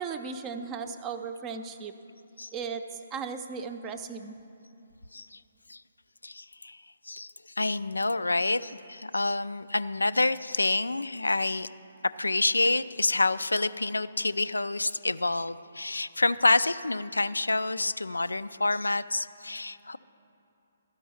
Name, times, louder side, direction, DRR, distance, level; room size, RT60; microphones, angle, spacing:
voice 1, 0.0-1.9 2.5-2.8 3.1-4.4, right 5 dB, 20° right, 8 dB, 0.5 m, -36 dB
voice 2, 6.2-6.8 7.1-11.7 12.2-20.0, left 2 dB, 85° left, 14 dB, 0.3 m, -28 dB
12.5 x 5.3 x 7.1 m, 2.9 s
figure-of-eight pair, 135°, 0 cm